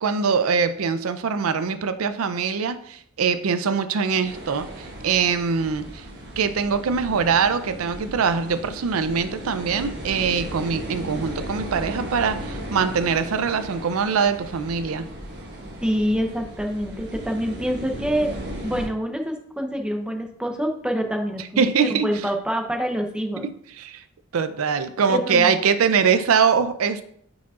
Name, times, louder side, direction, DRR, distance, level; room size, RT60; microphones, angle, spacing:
voice 1, 0.0-6.0 6.4-15.1 21.6-22.1 23.4-23.5 23.8-24.0 24.3-27.0, right 6 dB, 80° right, 11 dB, 0.5 m, -23 dB
sound 1, 4.2-18.9, equal, 55° right, 1.3 m, -36 dB
voice 2, 15.8-18.3 18.6-23.5 25.1-25.6, equal, 5° right, 3 dB, 0.7 m, -26 dB
9.1 x 4.9 x 2.4 m, 0.64 s
head